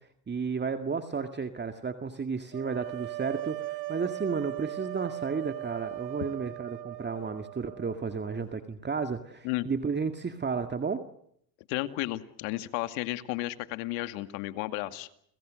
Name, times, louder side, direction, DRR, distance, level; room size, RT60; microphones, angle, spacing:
voice 1, 0.3-11.0, right 5 dB, 20° right, 7 dB, 2.0 m, -33 dB
sound 1, 2.5-8.4, right 17 dB, 90° right, 1.8 m, -38 dB
voice 2, 11.7-15.1, left 18 dB, 70° left, 10 dB, 2.3 m, -33 dB
30.0 x 26.5 x 6.4 m, 0.68 s
supercardioid pair, 90°, 49 cm